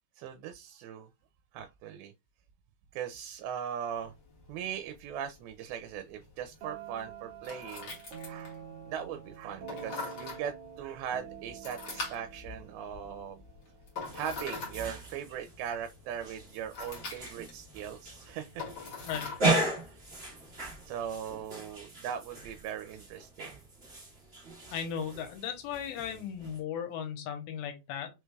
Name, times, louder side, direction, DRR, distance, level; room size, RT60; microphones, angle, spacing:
voice 1, 0.2-1.1 1.5-2.1 2.9-4.1 4.5-8.0 8.3-13.4 14.1-18.6 19.9-20.0 20.9-23.6, right 8 dB, 85° right, 2.4 m, -39 dB
sound 1, 3.9-21.4, left 3 dB, 45° left, 1.6 m, -45 dB
sound 2, 6.6-14.3, right 8 dB, 60° right, 1.7 m, -47 dB
sound 3, 14.0-26.6, right 2 dB, 30° right, 1.2 m, -37 dB
voice 2, 24.7-28.1, left 8 dB, 85° left, 2.7 m, -36 dB
5.7 x 3.2 x 2.3 m
omnidirectional pair, 4.3 m